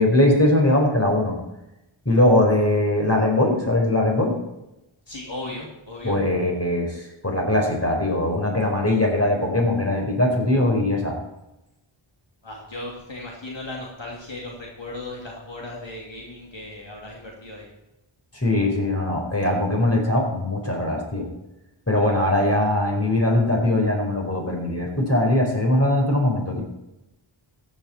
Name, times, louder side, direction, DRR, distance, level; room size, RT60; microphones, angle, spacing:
voice 1, 0.0-1.4 2.0-4.3 6.0-11.2 18.3-21.3 21.9-26.6, left 1 dB, 30° left, 1 dB, 4.6 m, -21 dB
voice 2, 5.1-6.2 12.4-17.7, left 2 dB, 60° left, -2 dB, 2.9 m, -36 dB
14.5 x 10.0 x 4.4 m, 0.92 s
wide cardioid pair, 55°, 49 cm